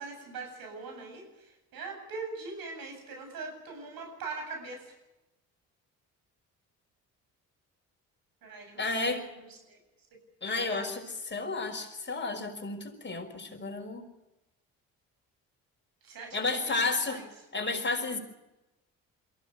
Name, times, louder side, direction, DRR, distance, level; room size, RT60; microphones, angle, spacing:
voice 1, 0.0-4.9 8.4-9.8 10.5-11.0 16.0-17.3, right 4 dB, 70° right, 4 dB, 7.9 m, -42 dB
voice 2, 8.8-9.2 10.4-14.1 16.3-17.2 17.5-18.2, left 3 dB, 30° left, 3 dB, 5.6 m, -32 dB
23.0 x 16.0 x 9.4 m, 1.0 s
supercardioid pair, 60°, 36 cm